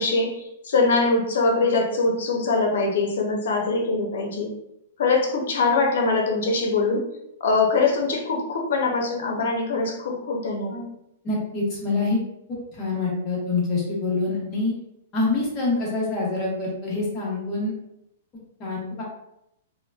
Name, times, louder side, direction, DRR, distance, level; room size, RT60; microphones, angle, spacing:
voice 1, 0.0-4.5 5.0-7.1 7.4-10.8, left 3 dB, 75° left, 1 dB, 0.7 m, -23 dB
voice 2, 11.2-12.2 12.7-14.7 15.1-17.7 18.6-19.0, left 3 dB, 25° left, -5 dB, 1.0 m, -25 dB
2.8 x 2.1 x 2.3 m, 0.81 s
hypercardioid pair, 155°, 0 cm